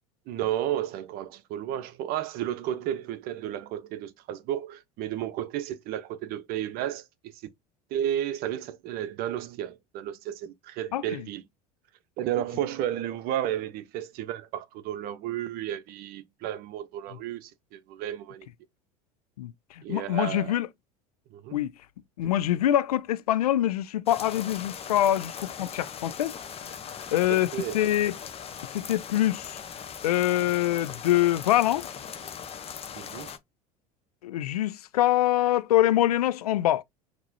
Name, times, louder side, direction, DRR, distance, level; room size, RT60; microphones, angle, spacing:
voice 1, 0.3-7.4 7.9-11.4 12.2-18.5 19.8-20.6 21.3-21.6 27.3-27.8 33.0-33.3, right 11 dB, 55° right, 0.8 m, -33 dB
voice 2, 10.9-11.2 19.4-20.7 21.5-21.7 22.2-26.4 27.1-28.1 28.7-29.6 30.0-31.9 34.2-36.8, left 13 dB, 85° left, 0.4 m, -25 dB
sound 1, 24.1-33.4, left 7 dB, 30° left, 0.8 m, -40 dB
5.9 x 2.9 x 2.7 m
hypercardioid pair, 75°, 19 cm